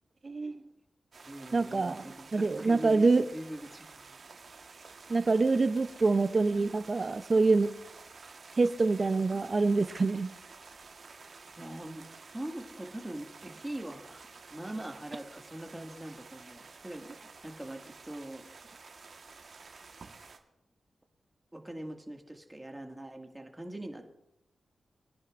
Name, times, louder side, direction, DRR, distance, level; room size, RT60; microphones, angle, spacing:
voice 1, 0.2-0.6 1.5-2.0 2.3-3.3 5.1-7.7 8.6-10.3, right 3 dB, 45° right, 11 dB, 0.5 m, -26 dB
sound 1, 1.1-20.4, right 4 dB, 60° right, 1.3 m, -51 dB
voice 2, 1.3-4.2 11.1-11.3 11.6-18.8 21.5-24.1, right 1 dB, 15° right, 3 dB, 1.9 m, -43 dB
23.5 x 10.5 x 2.5 m, 0.83 s
cardioid pair, 50°, 0 cm